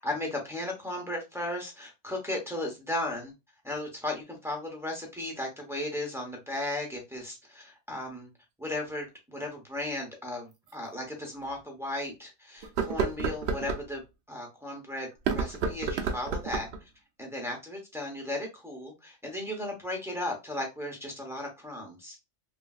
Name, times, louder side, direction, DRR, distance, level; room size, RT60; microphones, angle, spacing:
voice 1, 0.0-3.3 3.6-8.3 8.6-14.0 14.3-16.7 17.2-22.2, left 1 dB, 5° right, 0 dB, 0.7 m, -35 dB
sound 1, 9.4-9.5 10.7-10.8 11.3-11.4 12.6-13.8 15.1-16.8, right 5 dB, 65° right, 0.7 m, -30 dB
3.0 x 2.6 x 2.3 m, 0.25 s
omnidirectional pair, 1.3 m